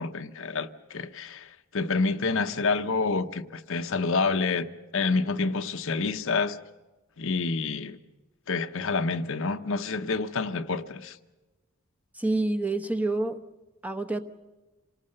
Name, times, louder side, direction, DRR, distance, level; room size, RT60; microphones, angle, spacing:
voice 1, 0.0-4.7 4.9-6.6 7.2-8.0 8.5-11.2, left 4 dB, 65° left, 0.9 m, -28 dB
voice 2, 12.1-13.4 13.8-14.2, right 2 dB, 5° right, 1.0 m, -27 dB
27.0 x 19.0 x 6.7 m
head